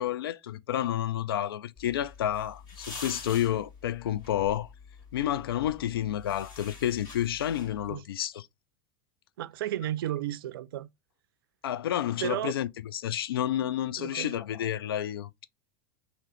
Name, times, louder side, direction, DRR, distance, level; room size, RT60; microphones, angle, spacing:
voice 1, 0.0-4.7 5.1-8.5 11.6-15.5, left 11 dB, 80° left, 0.4 m, -30 dB
sound 1, 1.8-7.9, left 4 dB, 35° left, 2.2 m, -46 dB
voice 2, 9.4-10.9 12.2-12.5 14.0-14.4, right 13 dB, 75° right, 0.4 m, -33 dB
3.0 x 2.9 x 3.0 m
hypercardioid pair, 95°, 12 cm